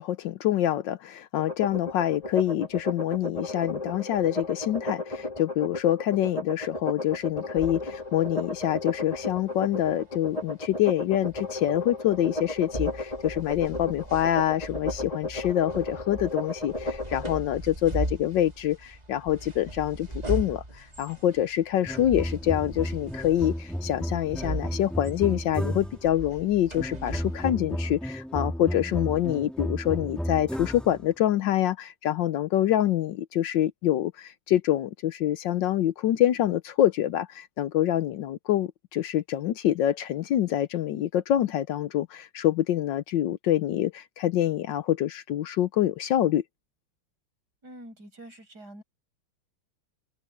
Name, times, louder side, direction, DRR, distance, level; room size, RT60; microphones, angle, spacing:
voice 1, 0.0-46.4, left 12 dB, 70° left, 1.3 m, -26 dB
sound 1, 1.4-17.4, left 2 dB, 15° left, 2.9 m, -34 dB
sound 2, 7.6-27.5, right 1 dB, 20° right, 2.7 m, -39 dB
sound 3, 21.8-26.1 26.8-31.0, equal, ahead, 1.8 m, -33 dB
voice 2, 47.6-48.8, right 1 dB, 50° right, 7.7 m, -46 dB
omnidirectional pair, 2.2 m